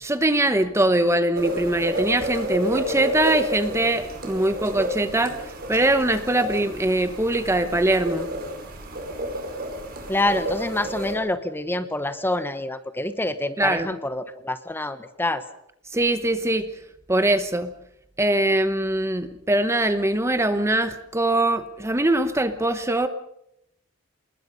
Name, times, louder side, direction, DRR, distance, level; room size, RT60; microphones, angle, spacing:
voice 1, 0.0-5.4 5.7-8.3 13.6-13.9 15.9-16.6 17.1-17.7 18.2-23.1, right 1 dB, 15° right, 10 dB, 1.0 m, -22 dB
sound 1, 1.3-11.1, equal, 45° right, 5.2 m, -31 dB
voice 2, 10.1-15.4, left 1 dB, 10° left, 11 dB, 1.1 m, -27 dB
27.5 x 21.0 x 5.5 m, 0.77 s
head